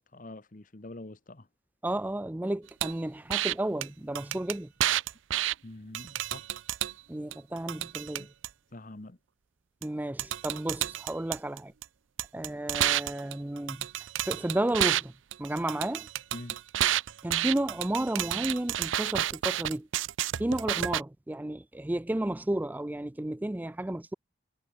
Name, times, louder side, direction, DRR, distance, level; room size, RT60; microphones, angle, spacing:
voice 1, 0.0-1.5 5.6-6.5 8.2-8.3 8.7-9.2 16.3-16.6, left 2 dB, 45° left, 1.1 m, -45 dB
voice 2, 1.8-4.7 7.1-8.3 9.8-11.7 12.3-13.9 14.2-15.1 15.4-16.1 17.2-19.9 20.4-24.1, right 1 dB, 10° right, 0.3 m, -32 dB
sound 1, 2.8-2.9 3.3-3.5 3.8-3.9 4.1-5.5 5.9-6.9 7.3-8.5 9.8-9.9 10.2-11.8 12.2-15.0 15.3-21.0, right 12 dB, 80° right, 0.5 m, -30 dB
head